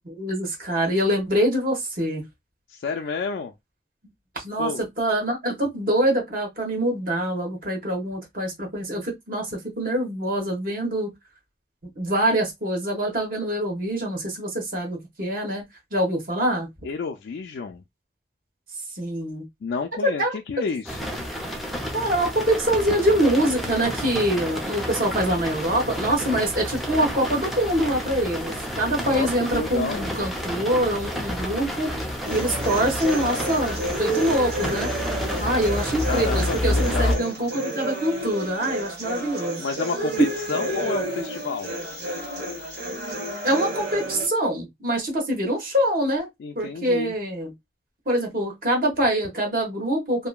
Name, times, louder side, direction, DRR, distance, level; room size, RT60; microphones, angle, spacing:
voice 1, 0.1-2.2 4.3-11.1 12.0-15.6 15.9-16.7 18.9-19.4 20.0-20.4 21.9-31.9 32.3-34.9 35.4-39.6 43.4-46.3 46.5-47.5 48.1-50.3, right 1 dB, 50° right, 1.2 m, -24 dB
voice 2, 2.7-3.5 4.6-4.8 16.8-17.8 19.6-21.2 29.1-30.1 36.0-37.3 39.6-41.7 46.4-47.1, left 5 dB, 75° left, 0.3 m, -30 dB
sound 1, 20.9-37.2, equal, ahead, 0.5 m, -29 dB
sound 2, 32.3-44.3, right 1 dB, 70° right, 1.1 m, -31 dB
2.7 x 2.5 x 2.2 m
head